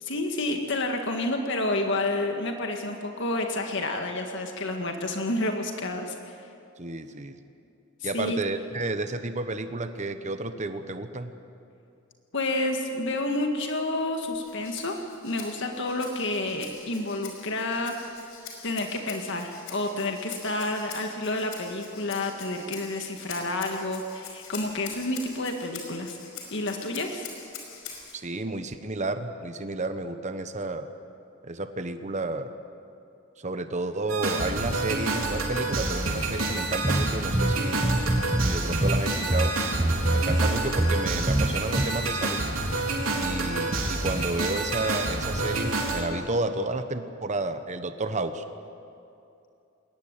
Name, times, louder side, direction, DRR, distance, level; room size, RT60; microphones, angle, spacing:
voice 1, 0.0-6.4 8.0-8.4 12.3-15.0 15.2-17.9 18.6-26.2 26.5-27.3, left 2 dB, 60° left, 3 dB, 1.8 m, -29 dB
voice 2, 6.8-7.4 8.0-11.3 28.1-30.9 31.4-32.5 33.4-37.9 38.4-39.5 40.1-42.4 43.1-48.4, right 2 dB, 35° right, 9 dB, 1.1 m, -31 dB
Rattle (instrument), 14.3-28.2, left 6 dB, 90° left, 5.2 m, -44 dB
sound 1, 34.1-46.0, right 2 dB, 70° right, 3.8 m, -28 dB
sound 2, 36.8-38.6 38.8-41.9, right 1 dB, 15° right, 0.5 m, -25 dB
21.5 x 18.5 x 9.0 m, 2.6 s
head